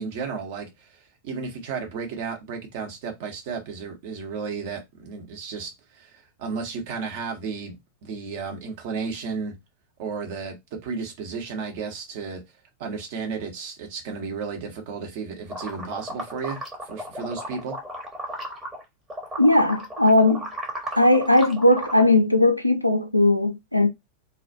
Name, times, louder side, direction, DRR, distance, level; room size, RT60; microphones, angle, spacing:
voice 1, 0.0-9.5 10.0-10.6 10.8-12.4 12.8-17.8, right 5 dB, 50° right, 0.8 m, -33 dB
sound 1, 15.5-18.8 19.1-22.0, right 1 dB, 15° right, 0.9 m, -34 dB
voice 2, 19.4-20.5 21.0-23.9, left 2 dB, 90° left, 0.3 m, -18 dB
2.3 x 2.1 x 2.6 m
figure-of-eight pair, 90°, 0 cm